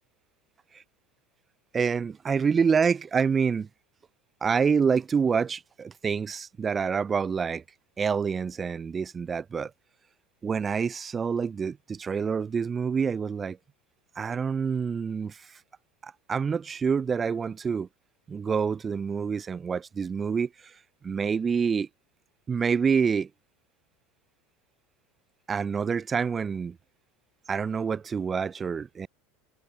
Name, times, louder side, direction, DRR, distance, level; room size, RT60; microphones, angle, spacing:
voice 1, 1.7-3.7 4.4-7.6 8.0-9.7 10.4-13.6 14.2-15.6 16.0-17.9 18.3-20.7 21.0-21.9 22.5-23.3 25.5-26.8 27.5-29.1, right 6 dB, 25° right, 0.4 m, -27 dB
figure-of-eight pair, 75°, 0 cm